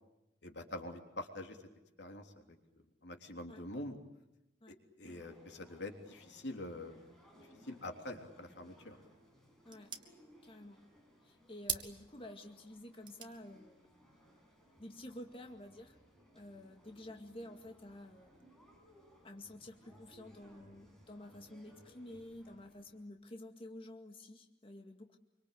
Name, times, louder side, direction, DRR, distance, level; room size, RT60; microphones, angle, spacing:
voice 1, 0.4-1.6 2.0-2.4 3.0-3.9 5.0-7.0 7.4-9.0, left 1 dB, 70° left, 4 dB, 3.4 m, -45 dB
sound 1, 5.0-23.1, equal, 5° left, 7.0 m, -63 dB
sound 2, 8.7-15.5, right 7 dB, 25° right, 1.9 m, -48 dB
voice 2, 10.4-10.8 11.2-13.9 14.8-16.0 16.3-18.3 19.2-25.2, left 1 dB, 30° left, 3 dB, 2.1 m, -50 dB
26.0 x 25.0 x 8.5 m, 0.95 s
head